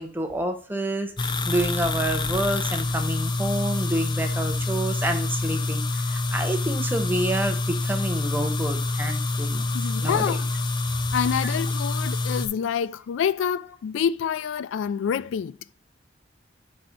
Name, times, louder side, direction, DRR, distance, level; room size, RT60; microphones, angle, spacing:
voice 1, 0.0-9.6 10.0-10.4, right 1 dB, 10° right, 0.7 m, -28 dB
sound 1, 1.2-12.5, left 2 dB, 25° left, 0.4 m, -27 dB
voice 2, 9.7-10.5 11.1-15.6, left 7 dB, 90° left, 0.3 m, -27 dB
4.7 x 4.1 x 4.9 m
head